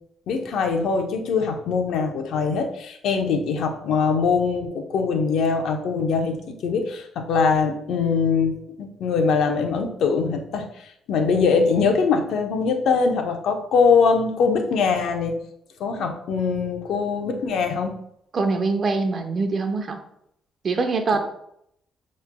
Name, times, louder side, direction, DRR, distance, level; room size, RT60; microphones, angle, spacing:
voice 1, 0.3-8.5 8.8-10.6 11.1-15.3 15.8-18.0, left 5 dB, 75° left, 4 dB, 0.7 m, -22 dB
voice 2, 18.3-20.0 20.6-21.2, right 3 dB, 45° right, 6 dB, 0.7 m, -23 dB
6.9 x 3.1 x 2.2 m, 0.74 s
cardioid pair, 90°, 0 cm